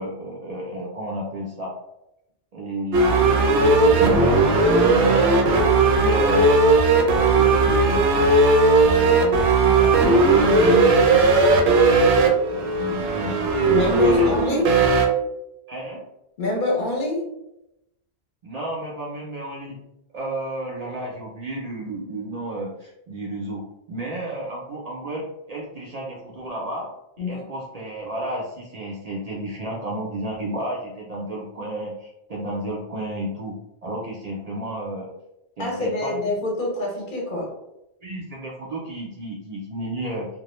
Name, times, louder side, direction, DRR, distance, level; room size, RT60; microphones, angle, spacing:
voice 1, 0.0-1.7 2.5-6.5 6.9-8.3 8.7-11.6 12.5-14.3 15.7-16.0 18.4-19.8 20.1-23.6 23.9-26.9 27.2-33.6 33.8-35.1 35.6-36.1 38.0-40.3, right 1 dB, 50° right, -4 dB, 0.5 m, -32 dB
sound 1, 2.9-15.1, right 3 dB, 75° right, 0.8 m, -17 dB
voice 2, 13.7-14.8 16.4-17.3 27.2-27.5 35.6-37.5, left 2 dB, 55° left, -1 dB, 0.7 m, -25 dB
2.3 x 2.1 x 3.0 m, 0.88 s
omnidirectional pair, 1.1 m